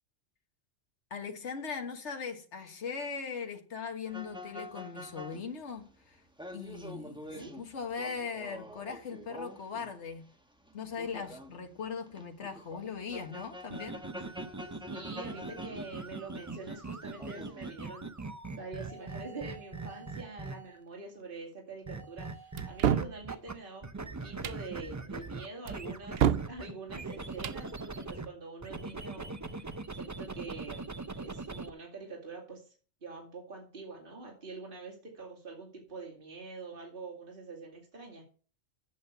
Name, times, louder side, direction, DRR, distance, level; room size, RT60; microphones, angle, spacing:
voice 1, 1.1-6.2 6.5-10.3 10.7-14.0 20.0-20.1, left 5 dB, 70° left, 1.8 m, -39 dB
sound 1, 4.1-10.1 10.7-16.7 17.1-17.7, left 1 dB, 5° right, 1.3 m, -46 dB
sound 2, 13.6-20.8 21.8-23.5 23.8-28.3 28.6-31.7, right 3 dB, 20° right, 0.5 m, -41 dB
voice 2, 14.9-18.1 18.5-30.9 31.2-32.7 33.0-38.2, right 3 dB, 45° right, 2.5 m, -45 dB
sound 3, 22.6-23.1 24.3-24.6 25.7-26.5 27.3-27.6, right 9 dB, 60° right, 0.8 m, -29 dB
8.3 x 6.7 x 6.7 m
omnidirectional pair, 1.2 m